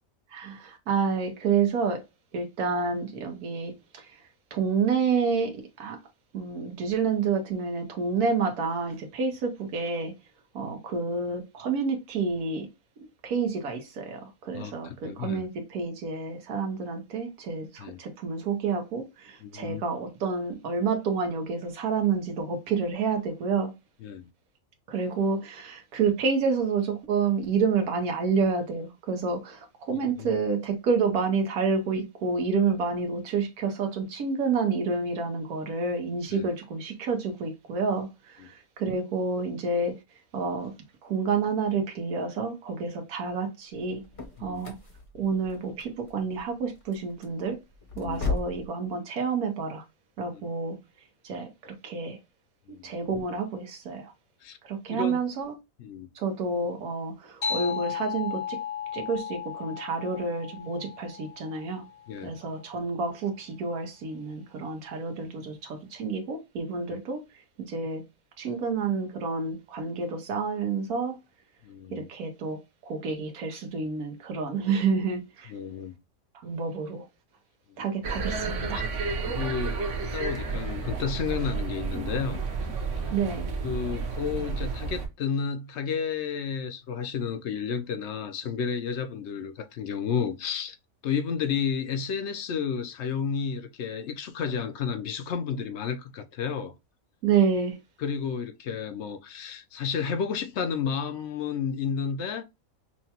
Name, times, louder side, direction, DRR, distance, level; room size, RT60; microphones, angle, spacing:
voice 1, 0.3-2.0 2.3-4.2 4.5-6.0 6.3-10.1 10.5-12.7 13.2-23.7 24.9-40.0 40.3-40.7 41.0-44.0 44.4-44.8 45.2-47.6 48.0-49.8 50.2-50.8 51.2-52.2 52.8-54.1 54.6-55.5 56.1-58.6 58.9-61.8 62.2-67.2 67.6-68.0 68.4-71.2 71.9-75.5 76.3-77.1 77.8-78.9 83.1-83.5 97.2-97.8, right 5 dB, 90° right, 1.4 m, -29 dB
voice 2, 14.5-15.5 17.8-18.0 19.4-19.8 24.0-24.3 29.9-30.4 36.3-36.5 44.4-44.6 48.0-48.2 50.3-50.4 52.7-52.9 54.4-54.6 54.9-55.2 55.8-56.1 62.1-62.4 71.6-72.1 75.5-75.9 77.7-77.8 78.7-78.8 79.3-79.8 80.1-82.4 83.6-90.8 91.0-96.7 98.0-102.4, left 6 dB, 60° left, 0.8 m, -32 dB
sound 1, 43.7-48.7, left 3 dB, 30° left, 0.7 m, -36 dB
sound 2, 57.4-62.4, left 7 dB, 80° left, 2.5 m, -35 dB
sound 3, 78.0-85.1, right 4 dB, 60° right, 1.1 m, -31 dB
5.8 x 2.2 x 2.8 m
omnidirectional pair, 1.5 m